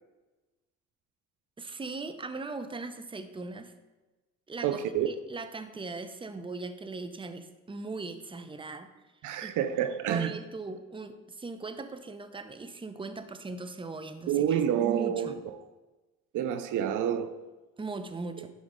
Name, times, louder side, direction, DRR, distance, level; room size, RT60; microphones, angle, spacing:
voice 1, 1.6-3.7 4.5-4.8 5.0-8.9 9.4-9.6 10.1-15.4 17.8-18.5, right 3 dB, 15° right, 0.8 m, -39 dB
voice 2, 4.6-5.1 9.2-10.3 14.3-15.3 16.3-17.4, right 9 dB, 80° right, 0.7 m, -28 dB
11.5 x 5.2 x 3.7 m
cardioid pair, 90°, 30 cm